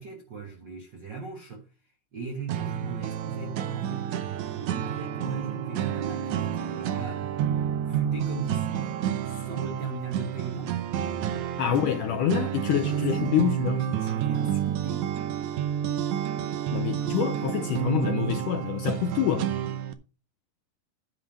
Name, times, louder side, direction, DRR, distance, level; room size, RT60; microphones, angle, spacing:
voice 1, 0.0-1.7 2.1-4.1 4.5-7.3 7.9-10.8 11.6-12.2 12.7-15.1 17.0-18.1, right 4 dB, 65° right, 1.1 m, -38 dB
sound 1, 2.5-19.9, right 10 dB, 85° right, 1.6 m, -30 dB
voice 2, 11.6-13.8 16.7-19.5, left 9 dB, 80° left, 1.9 m, -26 dB
10.5 x 3.7 x 7.1 m
omnidirectional pair, 4.5 m